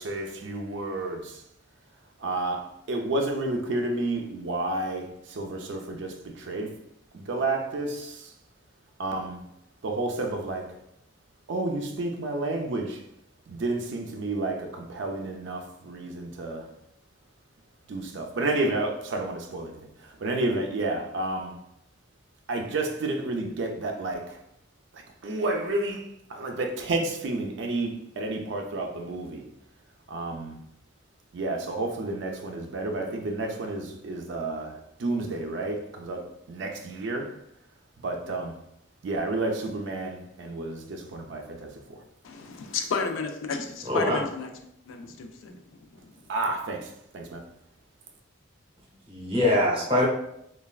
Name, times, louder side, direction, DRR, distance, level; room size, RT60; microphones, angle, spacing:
voice 1, 0.0-1.4 2.2-6.7 7.1-8.3 9.0-9.4 9.8-10.7 11.5-13.0 13.5-16.7 17.9-21.6 22.5-24.4 24.9-29.4 30.1-30.6 31.3-37.3 38.0-38.6 39.0-42.0 46.3-47.4, right 2 dB, 65° right, 0.4 m, -31 dB
voice 2, 42.2-44.5 44.9-45.6 45.9-46.0, left 5 dB, 80° left, 0.4 m, -32 dB
voice 3, 43.9-44.2 49.1-50.0, left 1 dB, 30° right, 0.8 m, -23 dB
3.1 x 2.2 x 2.3 m
head